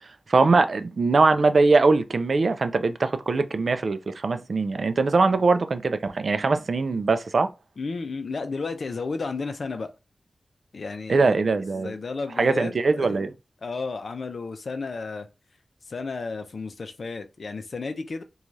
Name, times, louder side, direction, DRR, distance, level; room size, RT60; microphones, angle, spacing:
voice 1, 0.3-7.5 11.1-11.9 12.4-13.3, right 3 dB, 70° right, 0.3 m, -21 dB
voice 2, 7.8-9.9 10.7-11.4 11.8-13.2 13.6-15.3 15.9-18.2, left 4 dB, 75° left, 0.4 m, -32 dB
3.1 x 2.3 x 2.6 m
wide cardioid pair, 75°, 0 cm